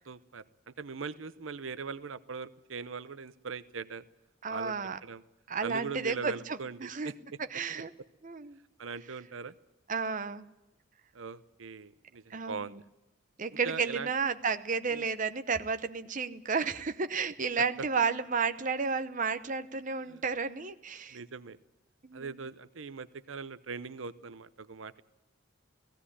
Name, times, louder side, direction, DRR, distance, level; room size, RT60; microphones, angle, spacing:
voice 1, 0.1-4.0 4.5-4.7 5.0-5.2 5.6-7.1 8.8-9.5 11.1-12.8 13.6-14.1 14.9-15.1 17.6-17.7 20.1-20.2 21.1-21.6 22.1-25.0, right 5 dB, 85° right, 15 dB, 0.8 m, -41 dB
voice 2, 4.4-5.0 5.5-7.1 7.5-7.9 8.2-8.6 9.9-10.5 12.3-12.8 13.4-21.2 22.0-22.4, right 5 dB, 40° right, 10 dB, 0.8 m, -32 dB
17.0 x 16.0 x 9.9 m, 0.96 s
head